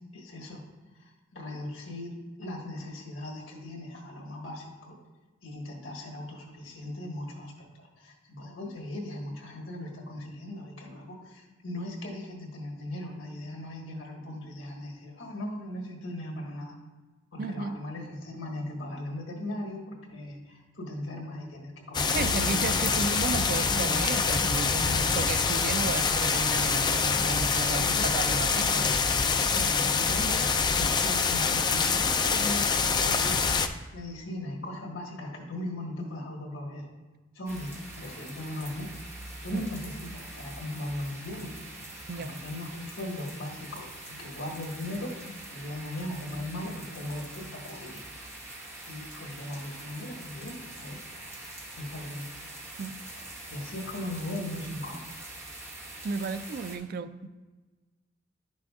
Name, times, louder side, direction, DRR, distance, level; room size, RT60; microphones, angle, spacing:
voice 1, 0.1-0.6 1.3-4.9 5.4-16.7 17.3-19.8 20.1-22.7 24.8-25.1 27.8-28.1 28.7-28.9 29.5-33.6 33.9-36.8 37.3-38.9 39.4-41.5 42.2-48.2 48.9-51.0 51.8-52.3 53.5-55.0, left 1 dB, 85° left, 0 dB, 1.5 m, -38 dB
voice 2, 17.4-17.8 22.1-28.7 39.5-39.6 42.1-42.4 52.8-52.9 56.0-57.3, right 4 dB, 50° right, 11 dB, 0.4 m, -33 dB
sound 1, 21.9-33.7, left 5 dB, 25° left, 0.3 m, -25 dB
sound 2, 37.5-56.8, right 1 dB, 15° right, 1.4 m, -44 dB
11.0 x 6.1 x 2.4 m, 1.3 s
head